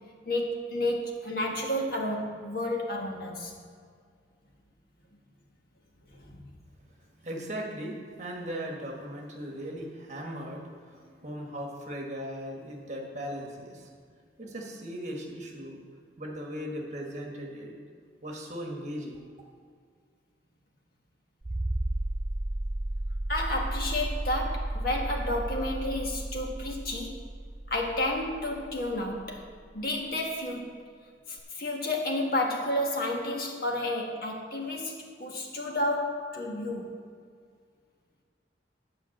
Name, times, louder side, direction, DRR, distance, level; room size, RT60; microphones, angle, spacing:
voice 1, 0.2-3.5 6.1-6.4 23.3-27.2 27.7-29.4 29.7-30.7 31.3-37.0, left 1 dB, 55° left, 0 dB, 1.6 m, -31 dB
voice 2, 7.2-13.9 14.4-15.8 16.2-17.8 18.2-19.2, equal, 40° right, 0 dB, 1.5 m, -38 dB
sound 1, 21.4-29.9 31.4-31.5, right 1 dB, 20° right, 0.5 m, -33 dB
9.4 x 5.0 x 7.7 m, 2.1 s
head